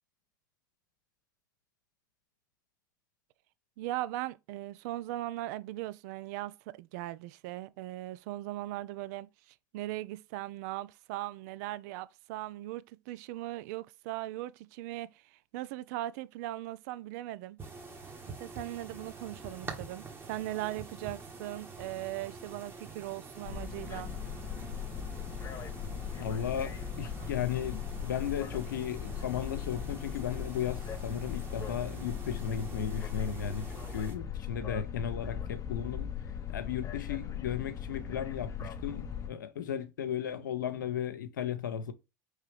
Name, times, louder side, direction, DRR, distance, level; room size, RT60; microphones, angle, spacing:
voice 1, 3.8-9.3 9.7-15.1 15.5-17.6 18.3-24.1, right 16 dB, 60° right, 0.4 m, -39 dB
sound 1, 17.6-34.1, right 4 dB, 20° right, 1.3 m, -47 dB
sound 2, 23.4-39.3, left 8 dB, 30° left, 0.6 m, -39 dB
voice 2, 26.2-26.7 27.0-33.7 33.9-36.1 36.5-41.9, left 8 dB, 75° left, 0.5 m, -35 dB
4.8 x 3.3 x 3.2 m
figure-of-eight pair, 80°, 10 cm